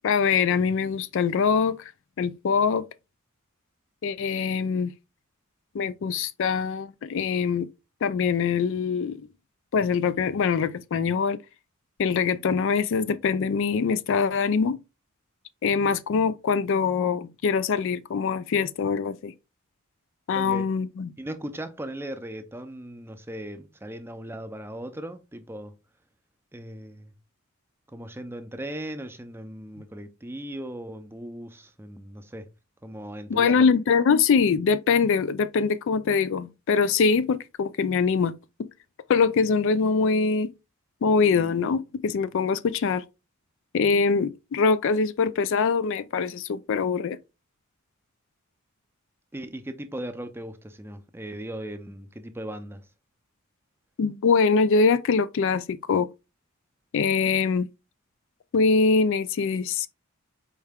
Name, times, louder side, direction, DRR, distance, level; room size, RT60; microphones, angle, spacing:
voice 1, 0.0-1.8 2.2-2.8 4.0-4.9 5.7-7.7 8.0-9.3 9.7-11.4 12.0-14.8 15.6-19.3 20.3-21.1 33.3-38.3 39.1-40.5 41.0-43.0 43.7-47.2 54.0-56.1 56.9-57.7 58.5-59.9, left 5 dB, 60° left, 0.4 m, -23 dB
voice 2, 20.3-20.7 21.2-25.7 26.5-27.1 27.9-32.5 32.8-33.6 49.3-52.8, right 1 dB, 10° right, 0.5 m, -38 dB
4.7 x 3.2 x 3.5 m
head